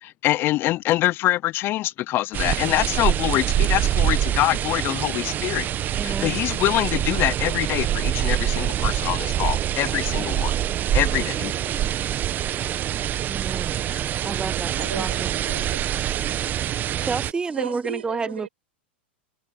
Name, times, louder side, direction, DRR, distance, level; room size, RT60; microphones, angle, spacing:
voice 1, 0.0-5.7 5.9-10.5 10.9-11.8, left 16 dB, 40° left, 0.7 m, -24 dB
sound 1, 2.3-17.3, right 11 dB, 30° right, 1.5 m, -25 dB
voice 2, 6.0-6.4 13.2-13.8 14.2-15.4 17.0-18.5, right 4 dB, 15° right, 1.2 m, -30 dB
voice 3, 14.8-16.0 17.3-18.5, right 7 dB, 80° right, 6.6 m, -36 dB
figure-of-eight pair, 95°, 6 cm